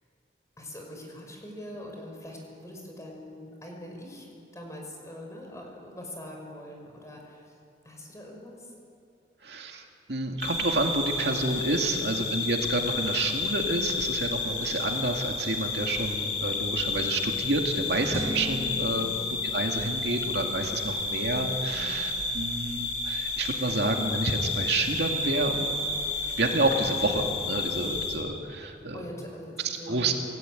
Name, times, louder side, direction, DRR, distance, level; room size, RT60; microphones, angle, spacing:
voice 1, 0.6-7.5 7.8-8.7 11.9-12.3 17.8-18.0 19.0-19.3 21.7-22.1 28.9-30.1, left 1 dB, 20° left, 1 dB, 5.3 m, -43 dB
voice 2, 9.4-9.8 10.1-19.1 19.5-25.8 26.4-29.0 29.9-30.1, right 2 dB, 70° right, 2 dB, 2.3 m, -29 dB
sound 1, 10.4-28.2, left 4 dB, 85° left, 5.8 m, -31 dB
sound 2, 18.1-20.5, right 1 dB, 15° right, 1.8 m, -38 dB
27.5 x 16.5 x 9.1 m, 2.4 s
head